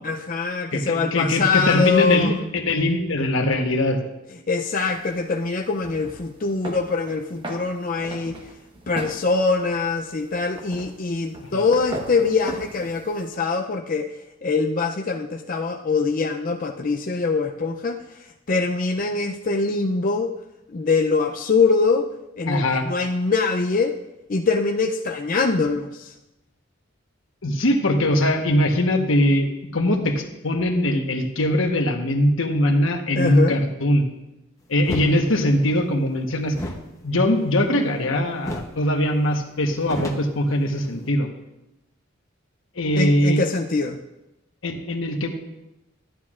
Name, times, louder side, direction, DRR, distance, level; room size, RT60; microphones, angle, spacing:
voice 1, 0.0-2.3 4.5-8.4 8.9-14.1 14.4-20.3 20.7-22.1 22.4-23.9 24.3-26.1 33.2-33.6 42.9-44.0, left 4 dB, 40° left, 2 dB, 0.5 m, -23 dB
voice 2, 0.7-4.0 11.5-11.6 22.5-22.9 27.4-34.1 34.7-36.6 37.0-41.3 42.8-43.5 44.6-45.3, left 1 dB, 70° left, 4 dB, 1.1 m, -21 dB
sound 1, 4.8-13.3, equal, 25° right, 1.1 m, -38 dB
sound 2, 34.8-35.1 36.5-38.1 38.4-38.8 39.1-39.2 39.5-41.1, equal, 15° left, 0.8 m, -33 dB
14.0 x 10.5 x 2.5 m, 0.93 s
head